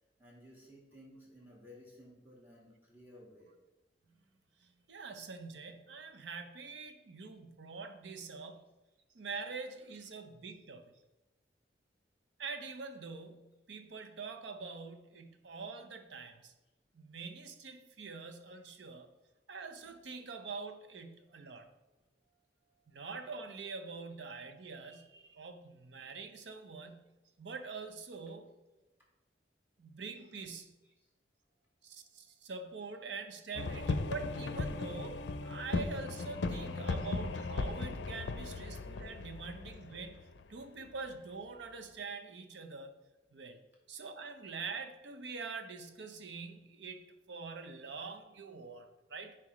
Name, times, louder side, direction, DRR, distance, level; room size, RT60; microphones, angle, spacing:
voice 1, 0.2-3.5 7.2-7.4 9.6-9.7 10.1-10.2 22.6-22.9 30.5-30.6, left 1 dB, 10° right, -4 dB, 1.7 m, -57 dB
voice 2, 4.6-8.7 9.1-10.9 12.4-16.5 16.9-19.1 19.5-21.7 22.9-28.6 29.8-30.8 31.8-42.9 43.3-43.6 43.9-49.4, right 4 dB, 85° right, 7 dB, 0.7 m, -45 dB
sound 1, 33.6-41.1, left 3 dB, 85° left, 0.5 m, -37 dB
9.5 x 4.4 x 3.1 m, 1.0 s
head